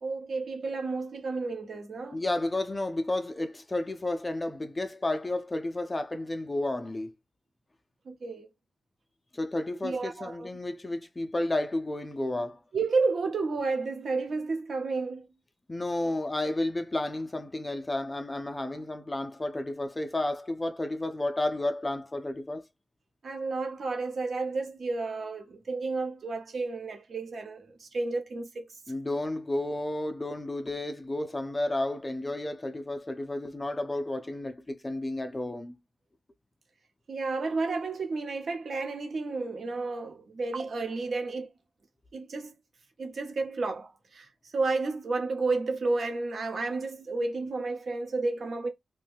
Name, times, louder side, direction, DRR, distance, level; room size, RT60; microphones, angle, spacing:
voice 1, 0.0-2.2 8.1-8.5 9.8-10.5 12.7-15.3 23.2-28.7 37.1-41.5 42.1-42.5 43.0-48.7, right 3 dB, 55° right, 0.7 m, -31 dB
voice 2, 2.1-7.1 9.3-12.6 15.7-22.6 28.9-35.7, left 1 dB, 20° left, 0.4 m, -32 dB
2.5 x 2.1 x 3.3 m
wide cardioid pair, 130°, 0 cm